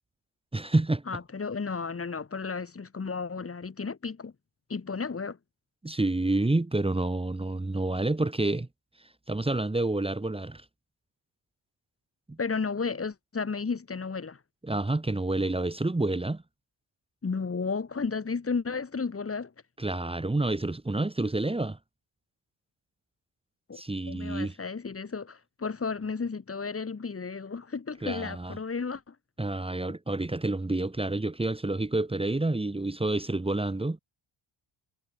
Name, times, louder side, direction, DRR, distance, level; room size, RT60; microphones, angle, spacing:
voice 1, 0.5-1.0 5.8-8.7 9.3-10.6 12.3-12.4 14.6-16.4 19.8-21.8 23.7-24.6 28.0-28.6 29.4-34.0, right 2 dB, 10° right, 3.1 m, -28 dB
voice 2, 1.1-4.3 4.7-5.4 12.4-14.4 17.2-19.5 23.7-23.8 24.1-29.1, left 5 dB, 25° left, 7.5 m, -33 dB
wide cardioid pair, 160°, 50 cm